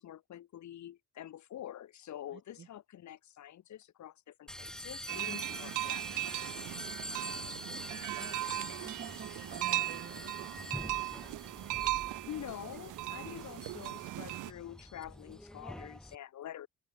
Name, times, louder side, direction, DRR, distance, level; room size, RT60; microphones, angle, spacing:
voice 1, 0.0-6.5 11.8-16.7, left 11 dB, 70° left, 2.5 m, -47 dB
voice 2, 2.3-2.7 7.7-10.9, right 7 dB, 40° right, 1.3 m, -50 dB
sound 1, 4.5-16.1, equal, ahead, 1.5 m, -45 dB
sound 2, 5.1-14.5, right 18 dB, 90° right, 0.8 m, -38 dB
open air
cardioid pair, 90°, 30 cm